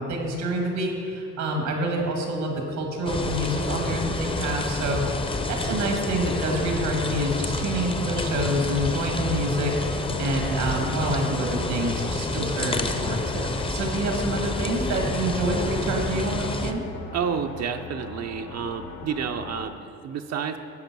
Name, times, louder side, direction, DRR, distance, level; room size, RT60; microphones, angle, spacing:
voice 1, 0.0-16.8, right 1 dB, 90° right, 1 dB, 1.8 m, -27 dB
sound 1, 0.7-19.7, left 5 dB, 70° left, 1.4 m, -41 dB
sound 2, 3.1-16.7, left 2 dB, 20° left, 0.6 m, -29 dB
voice 2, 17.1-20.6, right 7 dB, 60° right, 6 dB, 0.6 m, -30 dB
10.5 x 5.2 x 6.1 m, 2.5 s
cardioid pair, 90°, 30 cm